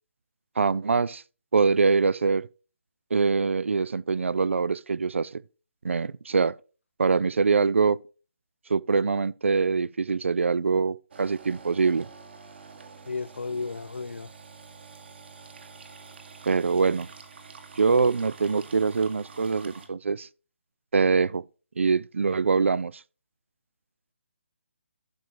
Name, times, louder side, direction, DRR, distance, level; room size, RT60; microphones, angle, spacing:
voice 1, 0.6-1.2 1.5-2.5 3.1-5.4 5.8-6.6 7.0-8.0 8.7-12.1 16.5-17.1 17.8-20.3 20.9-21.4 21.8-22.9, right 4 dB, 80° right, 0.4 m, -24 dB
sound 1, 11.1-19.9, right 5 dB, 60° right, 1.8 m, -47 dB
voice 2, 13.1-14.3, left 4 dB, 85° left, 0.6 m, -33 dB
11.5 x 5.2 x 4.7 m
figure-of-eight pair, 150°, 7 cm